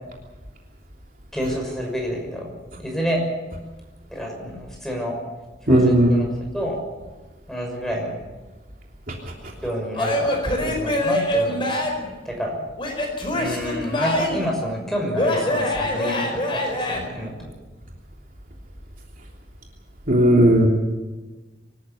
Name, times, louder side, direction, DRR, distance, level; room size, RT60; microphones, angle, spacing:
voice 1, 1.3-2.5 2.8-3.2 4.1-5.1 5.7-6.3 6.5-6.8 7.5-8.1 9.6-11.6 12.2-12.5 13.3-17.5, equal, ahead, 0 dB, 6.2 m, -28 dB
voice 2, 5.7-6.2 9.1-9.2 20.1-20.7, right 1 dB, 45° right, 0 dB, 3.2 m, -16 dB
Male speech man speaking / Yell / Laughter, 9.9-12.1 12.8-14.5 15.1-17.0, left 1 dB, 25° left, 4.9 m, -24 dB
25.0 x 13.5 x 8.5 m, 1.2 s
head